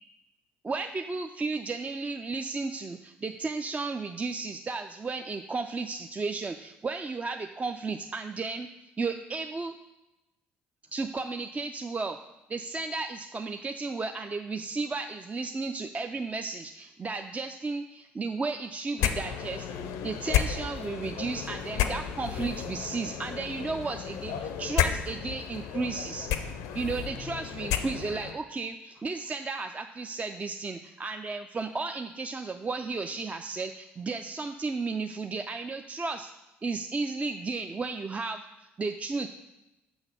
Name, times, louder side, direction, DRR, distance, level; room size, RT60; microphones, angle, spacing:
voice 1, 0.6-8.7 9.0-9.7 10.9-12.2 12.5-19.7 20.0-26.3 26.7-36.3 36.6-39.3, right 3 dB, 25° right, 6 dB, 0.3 m, -34 dB
sound 1, 19.0-28.3, left 9 dB, 65° left, 0.4 m, -32 dB
6.0 x 3.9 x 5.8 m, 0.98 s
figure-of-eight pair, 50°, 6 cm